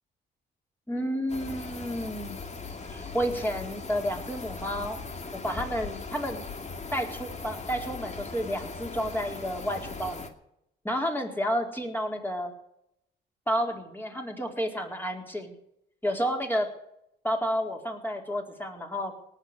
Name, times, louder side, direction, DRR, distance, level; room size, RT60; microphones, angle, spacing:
voice 1, 0.9-2.4 2.9-5.0 5.3-6.5 6.9-10.2 10.8-12.5 13.5-15.6 16.0-16.7 17.2-19.1, equal, 10° left, 2 dB, 4.1 m, -31 dB
sound 1, 1.3-10.3, left 4 dB, 35° left, 2.4 m, -39 dB
18.5 x 7.4 x 9.7 m, 0.78 s
cardioid pair, 90°, 20 cm